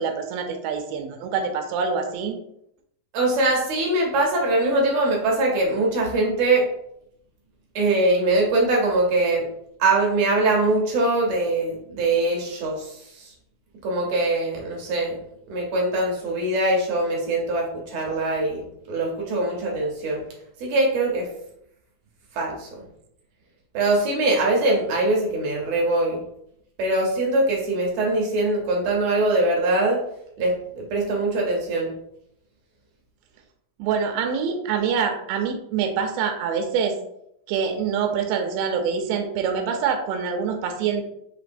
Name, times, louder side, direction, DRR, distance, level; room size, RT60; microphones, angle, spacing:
voice 1, 0.0-2.4 33.8-37.0 37.5-41.1, right 6 dB, 85° right, 5 dB, 2.3 m, -25 dB
voice 2, 3.1-6.7 7.7-9.5 9.8-13.3 13.8-15.2 15.5-20.2 20.6-21.3 22.3-22.8 23.7-26.2 26.8-30.0 30.4-31.9, right 2 dB, 70° right, -1 dB, 1.7 m, -22 dB
6.9 x 3.0 x 2.5 m, 0.75 s
omnidirectional pair, 4.0 m